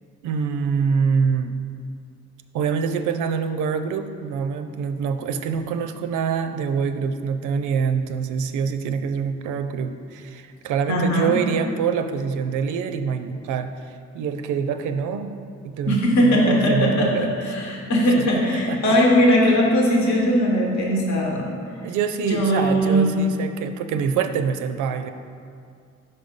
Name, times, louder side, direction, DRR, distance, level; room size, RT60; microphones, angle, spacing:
voice 1, 0.2-1.5 2.5-15.3 15.6-17.3 17.6-17.9 18.3-19.0 21.8-25.1, right 6 dB, 80° right, 9 dB, 0.5 m, -25 dB
voice 2, 10.9-11.4 15.9-21.5 22.2-23.1, equal, 65° left, -1 dB, 1.1 m, -19 dB
5.5 x 4.0 x 5.2 m, 2.3 s
cardioid pair, 90°, 30 cm